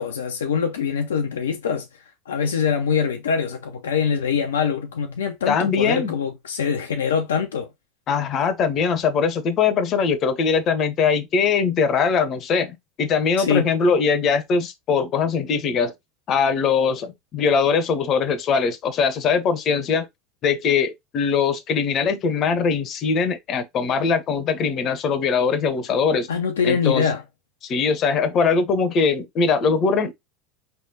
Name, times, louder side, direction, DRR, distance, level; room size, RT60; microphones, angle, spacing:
voice 1, 0.0-1.9 2.3-7.7 13.4-13.7 26.3-27.2, left 6 dB, 75° left, 0.6 m, -23 dB
voice 2, 5.5-6.1 8.1-15.9 16.3-20.1 20.4-26.3 26.6-27.1 27.6-30.1, left 5 dB, 40° left, 0.9 m, -21 dB
5.0 x 3.3 x 2.7 m
figure-of-eight pair, 75°, 0 cm